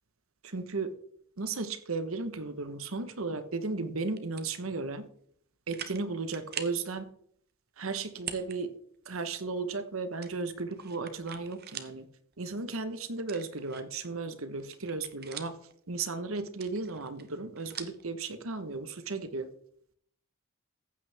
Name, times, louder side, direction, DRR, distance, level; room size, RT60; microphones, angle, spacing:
voice 1, 0.4-0.9 1.4-5.1 5.7-7.0 7.8-8.7 9.1-12.1 12.4-15.6 15.9-19.5, right 3 dB, 70° right, 11 dB, 1.1 m, -35 dB
sound 1, 4.2-4.6 5.2-5.3 5.7-6.0 6.3-6.8 8.1-8.6 8.9-9.0 10.2-12.0 12.3-12.4 13.2-14.1 14.5-15.7 16.5-18.0, right 9 dB, 45° right, 1.0 m, -43 dB
14.5 x 9.0 x 3.5 m, 0.65 s
head